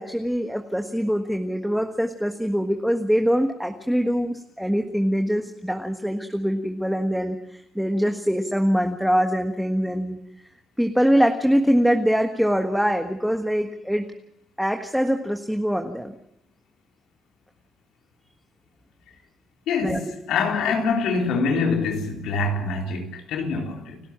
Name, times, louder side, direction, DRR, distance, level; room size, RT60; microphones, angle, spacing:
voice 1, 0.0-10.2 10.8-14.1 14.6-16.1 19.8-20.0, equal, ahead, 1.5 m, -23 dB
voice 2, 19.7-24.0, left 4 dB, 85° left, 3.7 m, -25 dB
30.0 x 12.5 x 7.5 m
cardioid pair, 90°, 0 cm